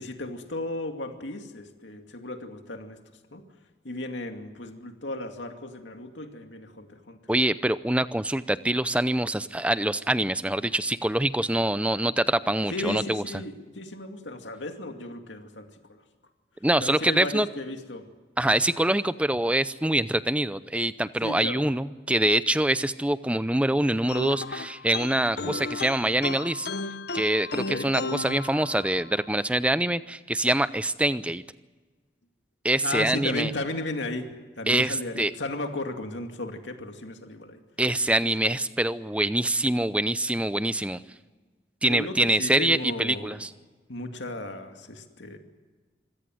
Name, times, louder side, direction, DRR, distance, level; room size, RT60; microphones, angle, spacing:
voice 1, 0.0-3.0 3.3-3.4 3.8-7.2 12.7-16.0 16.8-18.0 21.2-21.6 27.7-27.9 32.8-34.3 34.6-37.6 38.2-38.5 41.9-43.4 43.9-45.4, left 2 dB, 85° left, 5 dB, 2.4 m, -35 dB
voice 2, 7.3-13.2 16.6-17.5 18.4-26.7 27.1-31.4 32.6-33.5 34.7-35.3 37.8-41.0 41.8-43.5, right 1 dB, 5° right, 14 dB, 0.6 m, -25 dB
sound 1, 24.1-29.2, left 3 dB, 60° left, 0.9 m, -34 dB
25.5 x 16.5 x 7.7 m, 1.4 s
head